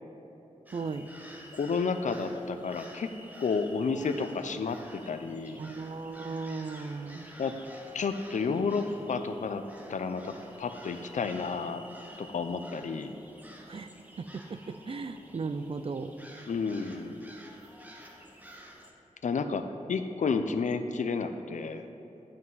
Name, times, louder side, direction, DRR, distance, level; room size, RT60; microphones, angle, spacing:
sound 1, 0.7-18.9, equal, 15° right, 1.1 m, -50 dB
voice 1, 0.7-1.1 5.6-7.3 13.7-13.9 14.2-16.1, right 4 dB, 45° right, 10 dB, 0.4 m, -36 dB
voice 2, 1.5-3.1 3.4-5.6 7.4-7.5 7.9-9.6 9.9-11.8 12.2-13.1 16.5-17.1 19.2-21.8, left 4 dB, 80° left, 8 dB, 0.6 m, -31 dB
11.5 x 7.5 x 4.0 m, 3.0 s
wide cardioid pair, 100°, 13 cm